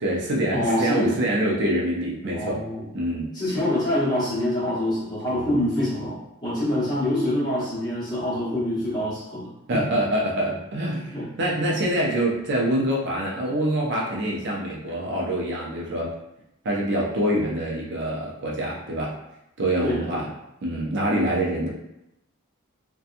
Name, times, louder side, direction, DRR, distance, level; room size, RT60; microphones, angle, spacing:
voice 1, 0.0-2.6 2.9-3.3 5.3-5.6 9.7-16.1 16.6-19.1 19.6-20.3 20.6-21.7, right 1 dB, 55° right, -3 dB, 0.5 m, -25 dB
voice 2, 0.5-1.2 2.3-2.9 3.3-9.8 11.1-11.3 19.8-20.3, left 1 dB, 20° left, -10 dB, 1.0 m, -25 dB
2.7 x 2.2 x 2.5 m, 0.84 s
head